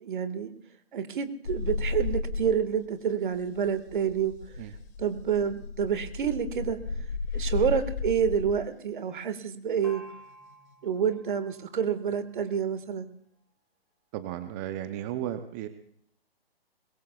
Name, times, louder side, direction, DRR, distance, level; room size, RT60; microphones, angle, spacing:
voice 1, 0.0-0.5 0.9-4.3 5.0-6.8 7.3-10.0 10.8-13.1, right 7 dB, 55° right, 10 dB, 1.6 m, -28 dB
sound 1, 1.4-2.9 3.1-8.6 10.3-10.7, left 4 dB, 60° left, 4.7 m, -33 dB
Gong, 9.8-13.3, right 1 dB, ahead, 3.8 m, -52 dB
voice 2, 14.1-15.7, right 11 dB, 20° right, 10 dB, 0.6 m, -34 dB
25.0 x 21.5 x 2.3 m, 0.67 s
figure-of-eight pair, 130°, 30 cm